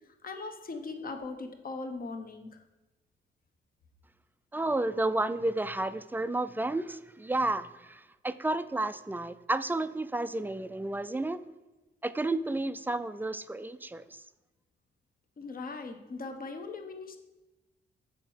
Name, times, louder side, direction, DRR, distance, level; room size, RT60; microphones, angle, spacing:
voice 1, 0.2-2.5 15.4-17.2, left 3 dB, 50° left, 6 dB, 0.9 m, -39 dB
voice 2, 4.5-11.4 12.0-14.2, right 2 dB, 10° right, 13 dB, 0.3 m, -31 dB
6.2 x 4.4 x 6.2 m, 1.1 s
cardioid pair, 90°, 19 cm